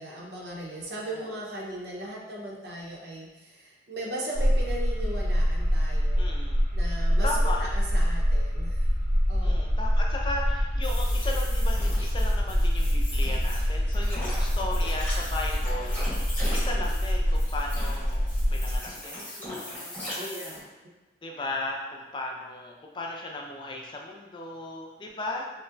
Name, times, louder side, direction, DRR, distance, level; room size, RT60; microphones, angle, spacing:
voice 1, 0.0-6.3 6.7-7.3 7.7-8.8 9.3-9.7 20.0-20.6, right 1 dB, 70° right, -3 dB, 0.7 m, -38 dB
sound 1, 4.3-18.8, equal, 70° left, 1.5 m, -25 dB
voice 2, 6.2-6.6 7.2-7.7 9.4-20.3 21.2-25.5, left 2 dB, 25° left, 0 dB, 0.3 m, -36 dB
sound 2, 10.8-20.6, left 1 dB, 10° left, 1.0 m, -39 dB
5.3 x 2.1 x 2.4 m, 1.1 s
head